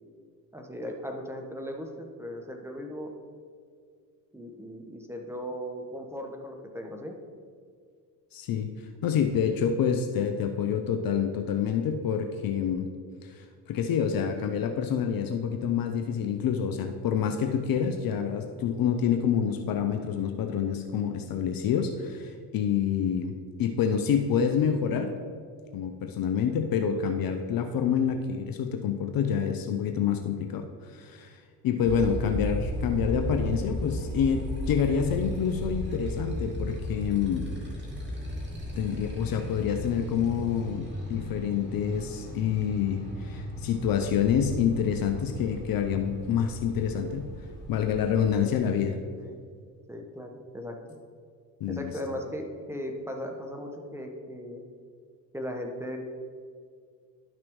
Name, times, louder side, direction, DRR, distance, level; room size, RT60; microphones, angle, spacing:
voice 1, 0.5-3.1 4.3-7.2 49.2-49.4 49.9-50.8 51.7-54.6 55.3-56.0, equal, 5° right, 2 dB, 1.1 m, -37 dB
voice 2, 8.3-8.7 9.0-12.9 13.2-25.1 25.7-37.5 38.7-47.3 47.7-49.0 51.6-51.9, left 7 dB, 45° left, 6 dB, 0.7 m, -27 dB
Motorcycle, 31.8-48.3, equal, 20° right, 2.0 m, -35 dB
11.5 x 6.0 x 3.1 m, 2.1 s
hypercardioid pair, 55°, 48 cm